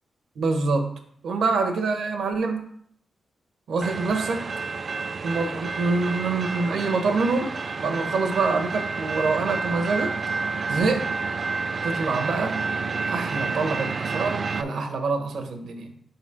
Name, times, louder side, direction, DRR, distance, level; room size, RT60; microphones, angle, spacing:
voice 1, 0.4-0.9 1.2-2.6 3.7-4.4 5.2-7.5 7.8-10.1 10.7-11.1 11.8-12.6 13.1-16.0, right 3 dB, 80° right, 5 dB, 0.9 m, -25 dB
sound 1, 3.8-14.6, right 4 dB, 50° right, 0.4 m, -29 dB
4.4 x 4.0 x 5.6 m, 0.66 s
cardioid pair, 65°, 0 cm